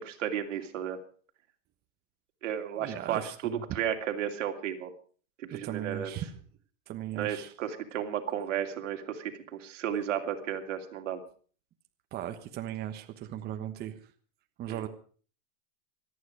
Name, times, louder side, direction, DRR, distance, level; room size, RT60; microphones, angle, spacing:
voice 1, 0.0-1.0 2.4-4.9 5.4-6.1 7.2-11.2 14.7-14.9, right 9 dB, 80° right, 4 dB, 2.8 m, -33 dB
voice 2, 2.8-3.6 5.5-6.4 6.9-7.5 12.1-14.0 14.6-14.9, right 11 dB, 25° right, 6 dB, 1.2 m, -37 dB
26.0 x 9.5 x 4.8 m, 0.42 s
supercardioid pair, 145°, 37 cm